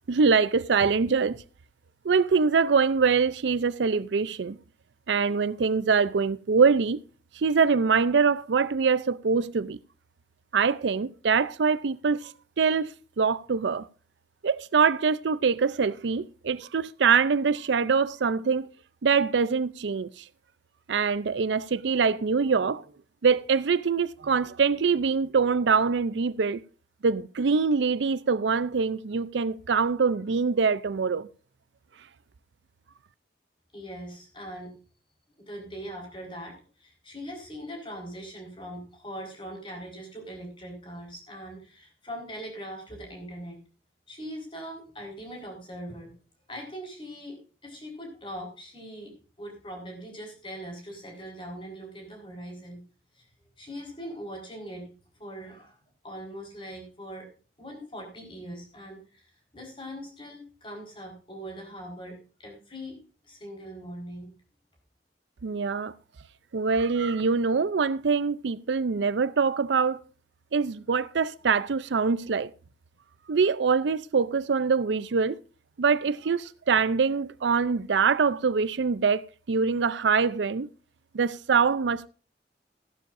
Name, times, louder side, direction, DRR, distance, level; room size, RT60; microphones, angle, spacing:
voice 1, 0.1-1.4 2.0-4.6 5.1-7.0 7.4-9.8 10.5-12.3 12.6-12.9 13.2-13.9 14.4-18.7 19.0-20.2 20.9-22.8 23.2-26.6 27.0-31.3 65.4-65.9 66.5-70.0 70.5-72.5 73.3-75.4 75.8-80.7 81.1-82.1, right 5 dB, 80° right, 0.5 m, -24 dB
voice 2, 33.7-34.8 35.4-43.6 44.1-46.1 46.5-52.8 53.1-53.3 53.6-54.9 55.2-55.8 56.0-57.3 57.6-63.0 63.2-64.3, equal, 30° left, 4.4 m, -41 dB
15.0 x 12.0 x 2.6 m
head